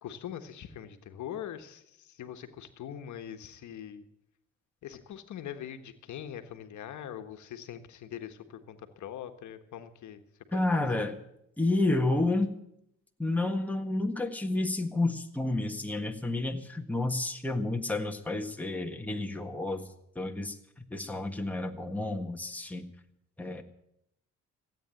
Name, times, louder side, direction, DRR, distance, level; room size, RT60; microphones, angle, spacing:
voice 1, 0.0-4.0 4.8-10.2 10.5-11.0, left 10 dB, 70° left, 8 dB, 1.4 m, -42 dB
voice 2, 10.5-11.1 11.6-12.6 13.2-19.9 20.1-20.6 20.9-22.9 23.4-23.6, left 2 dB, 5° left, 3 dB, 1.7 m, -30 dB
16.5 x 9.0 x 9.0 m, 0.78 s
cardioid pair, 90°, 30 cm